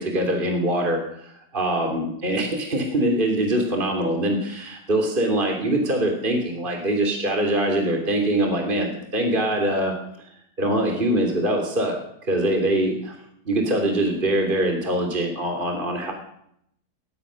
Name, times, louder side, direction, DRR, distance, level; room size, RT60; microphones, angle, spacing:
voice 1, 0.0-10.3 10.6-12.0 12.2-13.1 13.4-16.1, right 1 dB, 30° right, 3 dB, 3.1 m, -23 dB
20.0 x 20.0 x 6.3 m, 0.73 s
omnidirectional pair, 1.9 m